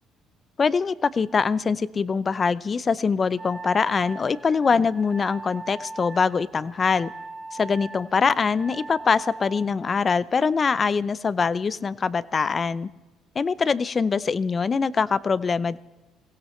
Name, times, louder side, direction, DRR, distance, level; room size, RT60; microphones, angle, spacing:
voice 1, 0.6-7.1 7.5-12.9 13.4-15.8, left 5 dB, 35° left, 18 dB, 0.5 m, -23 dB
Wind instrument woodwind instrument, 3.4-9.7, right 2 dB, 25° right, 1.4 m, -40 dB
21.5 x 16.5 x 3.2 m, 1.1 s
supercardioid pair, 65°, 0 cm